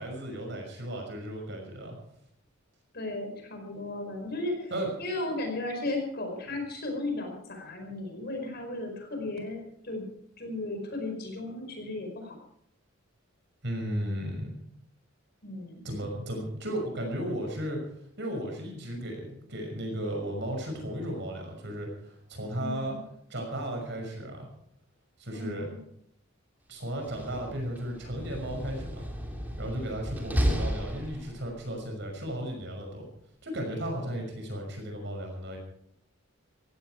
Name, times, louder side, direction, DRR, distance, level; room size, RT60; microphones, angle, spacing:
voice 1, 0.0-2.0 4.7-4.9 13.6-14.6 15.8-17.8 18.2-23.0 23.3-24.5 25.2-25.7 26.7-29.0 29.6-33.1 33.4-35.6, right 1 dB, 55° right, 2 dB, 6.0 m, -35 dB
voice 2, 2.9-4.7 5.0-10.1 10.4-12.4 15.4-15.9 22.6-23.0 25.3-25.8, left 2 dB, 50° left, 3 dB, 4.9 m, -35 dB
Slam, 26.9-31.6, equal, 10° right, 3.1 m, -33 dB
17.5 x 16.0 x 4.6 m, 0.71 s
head